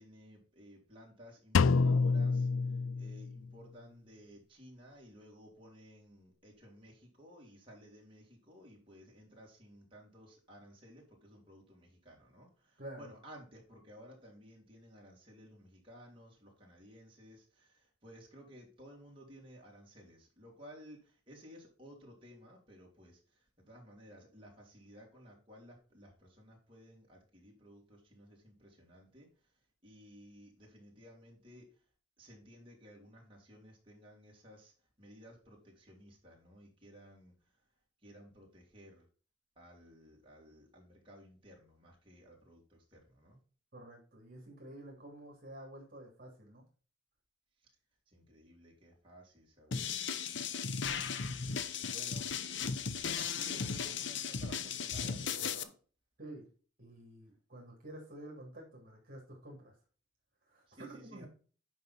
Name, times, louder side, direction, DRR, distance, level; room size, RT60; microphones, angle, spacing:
voice 1, 0.0-2.5 2.9-23.2 23.6-29.3 29.8-31.7 32.2-34.7 35.0-37.3 38.0-39.0 39.6-43.4 48.1-50.1 51.9-52.4 53.1-55.7 60.7-61.3, equal, 25° right, -3 dB, 3.0 m, -56 dB
Drum, 1.5-3.5, left 4 dB, 75° left, 0.4 m, -28 dB
voice 2, 12.8-13.1 43.7-46.6 56.2-56.5 56.8-59.7 60.4-61.3, right 1 dB, 45° right, 0 dB, 2.8 m, -50 dB
sound 1, 49.7-55.6, left 6 dB, 60° left, 0.8 m, -36 dB
9.2 x 5.7 x 4.1 m, 0.38 s
head